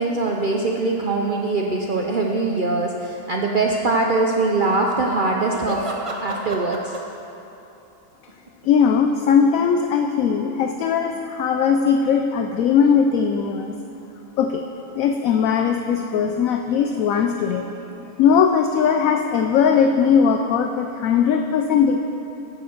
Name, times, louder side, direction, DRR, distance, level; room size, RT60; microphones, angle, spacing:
voice 1, 0.0-5.9 6.2-7.0, right 3 dB, 70° right, 0 dB, 0.4 m, -22 dB
sound 1, 1.1-1.2 5.4-7.2 8.3-9.4 10.1-10.2 11.1-11.2 16.0-18.4, right 1 dB, 30° right, 0.6 m, -35 dB
voice 2, 8.6-13.8 14.4-14.6 14.9-17.7 18.2-22.0, left 6 dB, 70° left, 5 dB, 0.9 m, -19 dB
9.8 x 6.9 x 6.5 m, 2.9 s
omnidirectional pair, 1.7 m